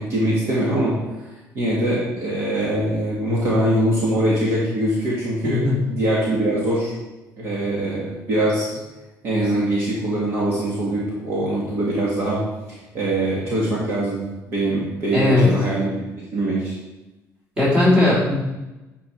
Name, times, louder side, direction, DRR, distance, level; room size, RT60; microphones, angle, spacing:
voice 1, 0.0-6.9 7.4-8.7 9.2-14.2 14.5-15.9 16.3-16.7, right 1 dB, 40° right, -6 dB, 2.0 m, -23 dB
voice 2, 15.1-15.5 17.6-18.3, left 2 dB, 15° right, -7 dB, 3.2 m, -17 dB
9.9 x 4.8 x 4.6 m, 1.0 s
cardioid pair, 170°, 6 cm